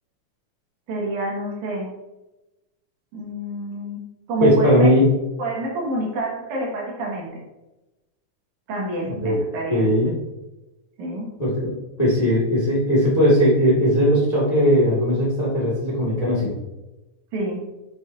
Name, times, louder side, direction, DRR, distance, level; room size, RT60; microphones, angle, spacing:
voice 1, 0.9-1.9 3.1-4.0 4.3-4.9 5.4-7.4 8.7-9.9 11.0-11.3 17.3-17.6, right 1 dB, 70° right, -3 dB, 3.1 m, -28 dB
voice 2, 4.4-5.1 9.0-9.4 9.7-10.2 11.4-11.7 12.0-16.5, equal, 15° left, -5 dB, 1.4 m, -18 dB
8.8 x 6.8 x 2.7 m, 1.0 s
omnidirectional pair, 3.6 m